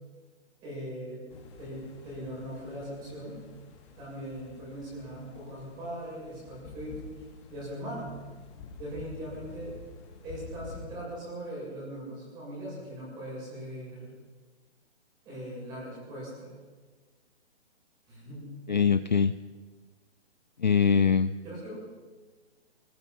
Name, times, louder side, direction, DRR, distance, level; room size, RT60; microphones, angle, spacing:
voice 1, 0.6-1.3 1.6-3.4 4.0-7.0 7.5-8.1 8.8-9.7 10.2-14.1 15.2-16.5 18.1-18.5 21.4-21.7, equal, 15° right, -5 dB, 7.7 m, -40 dB
sound 1, 1.3-10.9, left 4 dB, 25° left, 2.7 m, -48 dB
voice 2, 18.7-19.4 20.6-21.3, left 6 dB, 40° left, 13 dB, 0.5 m, -23 dB
24.0 x 20.0 x 5.6 m, 1.4 s
hypercardioid pair, 175°, 34 cm